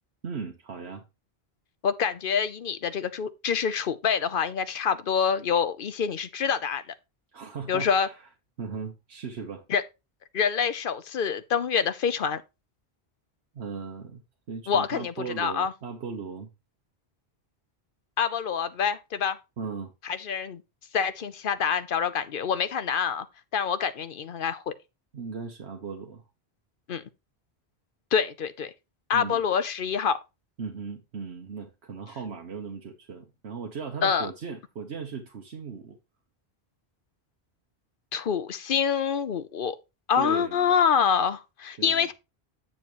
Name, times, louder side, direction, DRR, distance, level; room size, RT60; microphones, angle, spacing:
voice 1, 0.2-1.0 7.3-8.3 8.6-9.7 13.5-14.2 14.5-16.5 19.6-19.9 25.1-26.2 29.1-29.4 30.6-36.0 40.2-40.8 41.8-42.1, right 5 dB, 90° right, 1.3 m, -37 dB
voice 2, 1.8-6.8 7.7-8.1 9.7-9.8 10.3-12.4 14.7-15.7 18.2-19.4 20.0-20.6 20.9-23.3 23.5-24.7 26.9-27.0 28.1-28.7 29.1-30.2 34.0-34.3 38.1-39.8 40.1-42.1, left 7 dB, 60° left, 0.9 m, -26 dB
8.8 x 6.9 x 3.0 m
omnidirectional pair, 1.1 m